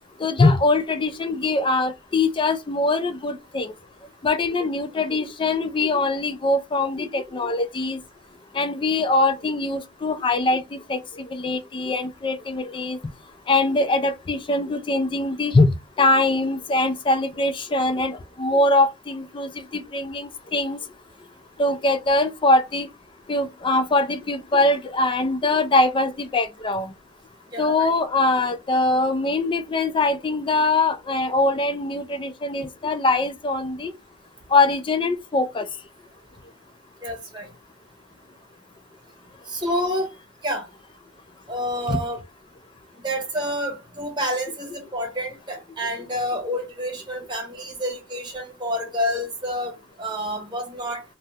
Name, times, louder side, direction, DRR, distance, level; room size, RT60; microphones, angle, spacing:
voice 1, 0.2-3.7 4.2-8.0 8.5-13.0 13.5-15.7 16.0-20.8 21.6-22.9 23.3-26.9 27.6-33.9 34.5-35.7 41.9-42.0, left 2 dB, 25° left, 0.4 m, -22 dB
voice 2, 27.5-27.9 37.0-37.5 39.5-40.1 40.4-40.6 41.5-42.2 43.0-51.0, equal, 25° right, 1.1 m, -28 dB
2.7 x 2.1 x 3.5 m
head